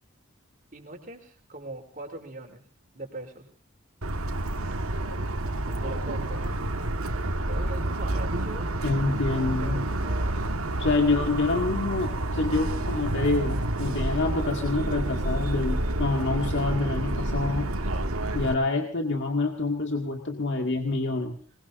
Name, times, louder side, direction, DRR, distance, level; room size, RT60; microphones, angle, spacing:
voice 1, 0.7-2.6 2.9-3.5 5.7-6.4 7.5-8.7 9.3-10.5 17.8-18.1, right 2 dB, 40° right, 3 dB, 3.8 m, -41 dB
Motor vehicle (road) / Siren, 4.0-18.5, right 1 dB, 85° right, 1.7 m, -29 dB
voice 2, 8.8-9.9 10.8-17.7 18.3-21.4, left 3 dB, 60° left, 2 dB, 2.1 m, -27 dB
25.5 x 21.0 x 2.7 m, 0.43 s
head